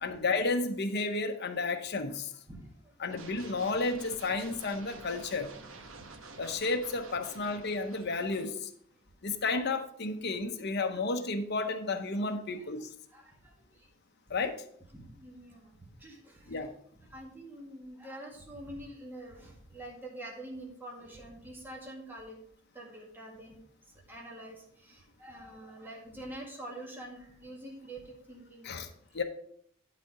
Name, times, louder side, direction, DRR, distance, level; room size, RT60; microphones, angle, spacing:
voice 1, 0.0-2.3 3.0-5.5 6.4-8.7 9.2-12.9 14.3-14.6 16.5-16.7 28.6-28.9 29.1-29.2, left 3 dB, 55° left, 5 dB, 0.9 m, -32 dB
voice 2, 2.5-2.9 10.8-11.0 12.6-12.7 13.1-13.9 14.9-16.7 17.0-22.4 22.7-23.6 24.1-28.7 29.1-29.2, right 1 dB, 10° right, -2 dB, 1.8 m, -46 dB
sound 1, 3.1-8.5, right 3 dB, 80° right, 1.0 m, -49 dB
11.5 x 4.2 x 4.8 m, 0.64 s
head